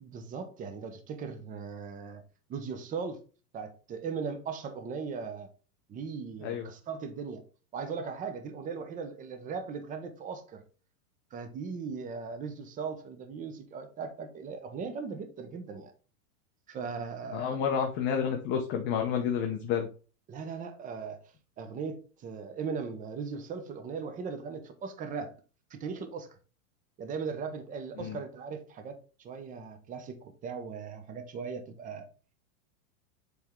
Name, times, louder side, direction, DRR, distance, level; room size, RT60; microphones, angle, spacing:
voice 1, 0.0-2.2 2.5-3.2 3.5-5.5 5.9-7.4 7.7-10.6 11.3-15.9 16.7-17.6 20.3-21.2 21.6-25.3 25.7-26.3 27.0-32.1, right 5 dB, 20° right, 0.8 m, -38 dB
voice 2, 17.3-19.9 28.0-28.2, left 7 dB, 25° left, 0.7 m, -30 dB
7.7 x 3.5 x 3.6 m
supercardioid pair, 150°, 44 cm